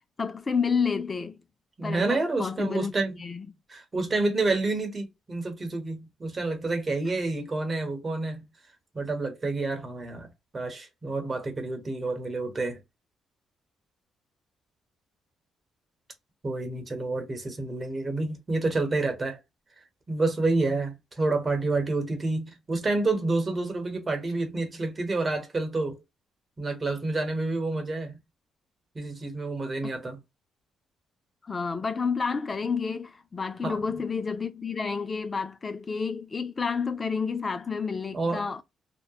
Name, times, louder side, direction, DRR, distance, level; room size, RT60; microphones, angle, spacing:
voice 1, 0.2-1.4 1.8-3.5 31.4-38.6, left 5 dB, 30° left, 0.3 m, -30 dB
voice 2, 1.8-3.2 3.7-8.5 8.9-10.3 10.5-12.8 16.4-19.4 20.1-26.0 26.6-28.2 28.9-30.2 33.6-33.8 38.1-38.4, right 3 dB, 30° right, 1.0 m, -29 dB
2.9 x 2.1 x 2.3 m
cardioid pair, 90°, 0 cm